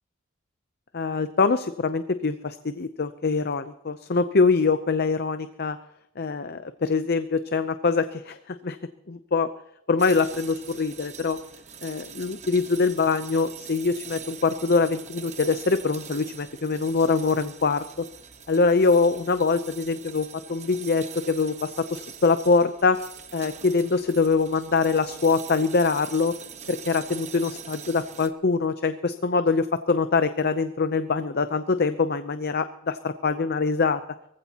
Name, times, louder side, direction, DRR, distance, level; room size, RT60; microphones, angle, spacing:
voice 1, 0.9-5.8 6.2-8.8 9.1-9.5 9.9-11.4 11.8-18.1 18.5-23.0 23.3-26.4 26.7-34.0, left 4 dB, 50° left, 10 dB, 0.7 m, -24 dB
sound 1, 10.0-28.3, right 7 dB, 35° right, 1.2 m, -43 dB
23.0 x 15.5 x 3.0 m, 0.80 s
head